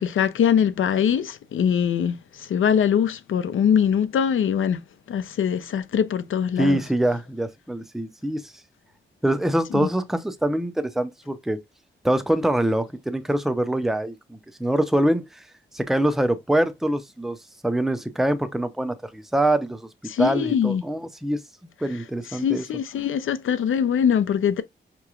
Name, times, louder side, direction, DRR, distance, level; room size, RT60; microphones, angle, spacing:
voice 1, 0.0-4.8 5.1-6.8 9.7-9.9 20.1-20.8 22.3-24.6, left 8 dB, 90° left, 0.6 m, -22 dB
voice 2, 6.6-8.5 9.2-11.6 12.0-15.4 15.7-17.4 17.6-19.9 20.2-21.4 21.8-22.6, right 1 dB, ahead, 0.5 m, -24 dB
5.7 x 3.0 x 2.4 m
wide cardioid pair, 150°, 20 cm